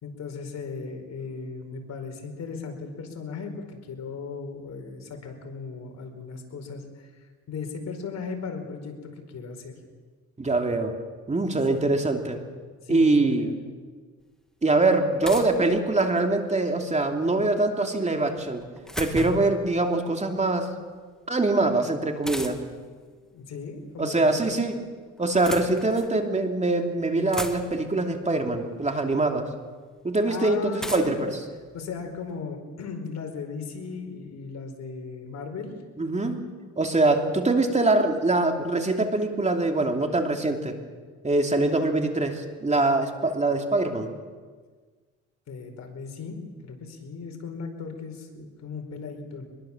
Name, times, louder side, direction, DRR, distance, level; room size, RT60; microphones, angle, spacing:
voice 1, 0.0-9.7 11.7-11.9 12.8-13.6 23.3-24.5 30.2-31.3 31.7-35.7 45.5-49.5, left 5 dB, 60° left, 4 dB, 4.7 m, -37 dB
voice 2, 10.4-10.9 11.3-12.4 12.9-13.5 14.6-18.6 19.0-20.7 21.3-22.6 24.0-24.8 25.2-29.5 30.0-31.3 36.0-36.4 36.8-40.8 41.2-44.1, right 2 dB, 25° right, 4 dB, 2.9 m, -23 dB
sound 1, 14.2-14.3 15.2-16.4 18.4-19.6 22.2-22.9 24.0-24.6 25.2-26.2 26.8-26.9 27.1-28.0 29.1-29.2 30.8-32.3, equal, ahead, 2.3 m, -37 dB
24.5 x 21.5 x 7.3 m, 1.5 s
cardioid pair, 90°, 30 cm